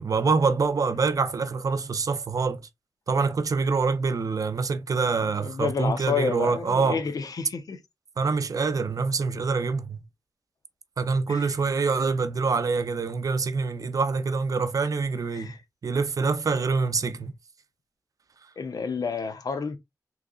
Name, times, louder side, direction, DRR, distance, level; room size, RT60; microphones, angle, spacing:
voice 1, 0.0-2.6 3.1-7.0 8.2-10.0 11.0-15.6 15.8-17.3, right 4 dB, 60° right, 0.5 m, -25 dB
voice 2, 5.2-7.8 11.3-11.5 15.3-15.6 18.6-19.8, left 5 dB, 70° left, 0.6 m, -30 dB
3.6 x 3.1 x 2.3 m
cardioid pair, 70°, 7 cm